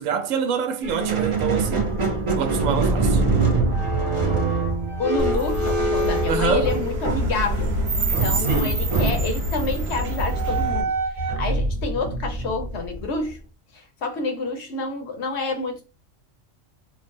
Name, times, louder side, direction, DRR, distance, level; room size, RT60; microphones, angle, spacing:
voice 1, 0.0-1.9 2.4-3.2 6.3-6.7 8.5-8.7, right 6 dB, 85° right, 1.0 m, -26 dB
Squeak, 0.8-7.2 8.1-13.3, right 3 dB, 35° right, 0.5 m, -24 dB
sound 1, 4.2-11.9, right 1 dB, 10° right, 0.8 m, -34 dB
voice 2, 5.0-7.7 8.0-13.4 13.7-15.9, left 3 dB, 65° left, 0.9 m, -28 dB
sound 2, 5.2-10.8, right 1 dB, 60° right, 1.0 m, -26 dB
3.1 x 2.2 x 2.6 m
omnidirectional pair, 1.3 m